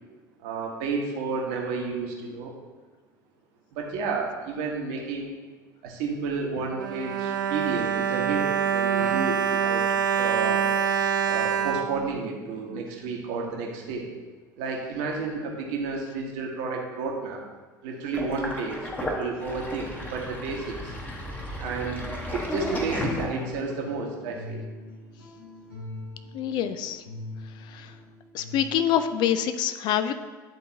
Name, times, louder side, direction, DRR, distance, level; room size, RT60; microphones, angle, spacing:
voice 1, 0.4-2.5 3.7-5.3 5.8-9.8 10.2-10.9 11.3-14.1 14.6-17.4 17.8-20.9 21.6-24.6, right 4 dB, 60° right, 0 dB, 1.2 m, -31 dB
Bowed string instrument, 6.6-12.8 13.5-13.6 13.9-14.0, right 8 dB, 75° right, 0.4 m, -26 dB
Sink (filling or washing), 18.1-23.7, equal, 15° left, 1.2 m, -34 dB
sound 1, 20.8-29.0, left 2 dB, 90° left, 1.3 m, -43 dB
voice 2, 26.3-27.0 27.7-27.9 28.3-30.1, left 10 dB, 45° left, 10 dB, 0.4 m, -26 dB
10.5 x 3.8 x 2.8 m, 1.3 s
figure-of-eight pair, 70°, 11 cm